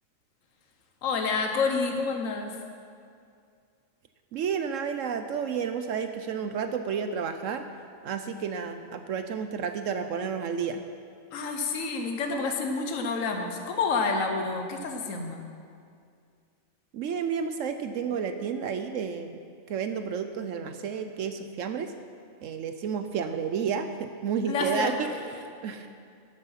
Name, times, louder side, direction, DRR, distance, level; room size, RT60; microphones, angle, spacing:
voice 1, 1.0-2.6 11.3-15.4 24.5-25.2, left 4 dB, 70° left, 4 dB, 1.3 m, -29 dB
voice 2, 4.3-7.6 8.0-10.8 16.9-19.4 19.7-21.9 22.4-25.9, right 6 dB, 70° right, 8 dB, 0.9 m, -31 dB
12.0 x 9.2 x 5.7 m, 2.3 s
omnidirectional pair, 1.4 m